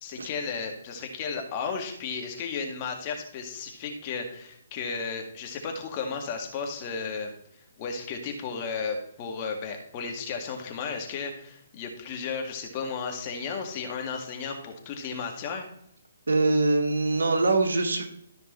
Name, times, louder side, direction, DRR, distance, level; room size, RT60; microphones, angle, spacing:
voice 1, 0.0-15.7, left 5 dB, 35° left, 3 dB, 1.9 m, -34 dB
voice 2, 16.3-18.0, right 2 dB, 70° right, 5 dB, 1.6 m, -23 dB
13.5 x 5.3 x 4.4 m, 0.73 s
figure-of-eight pair, 135°, 0 cm